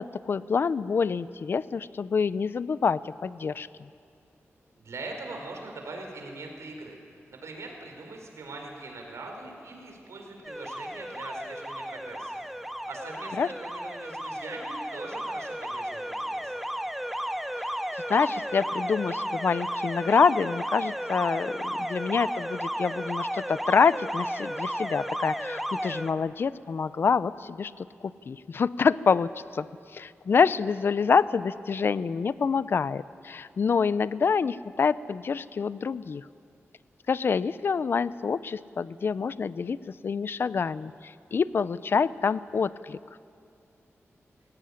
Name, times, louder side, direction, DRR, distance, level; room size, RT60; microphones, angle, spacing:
voice 1, 0.0-3.9 13.4-13.5 17.9-27.9 28.3-29.7 29.9-36.2 37.1-39.8 40.0-43.0, left 5 dB, 50° left, 17 dB, 0.5 m, -26 dB
voice 2, 4.8-7.0 7.3-12.4 12.8-16.5, right 2 dB, 85° right, 2 dB, 4.6 m, -41 dB
Alarm, 10.4-26.1, equal, ahead, 0.8 m, -33 dB
21.5 x 17.5 x 10.0 m, 2.4 s
wide cardioid pair, 165°, 5 cm